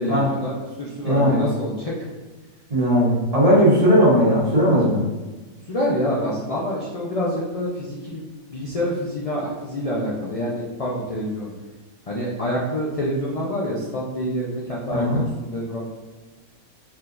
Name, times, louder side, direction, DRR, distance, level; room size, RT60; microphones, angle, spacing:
voice 1, 0.0-1.9 5.7-8.3 8.5-11.5 12.1-15.9, equal, 55° left, -6 dB, 0.4 m, -27 dB
voice 2, 1.0-1.4 2.7-5.0 14.9-15.2, equal, 25° right, -8 dB, 1.4 m, -17 dB
4.6 x 3.6 x 2.6 m, 1.3 s
omnidirectional pair, 1.6 m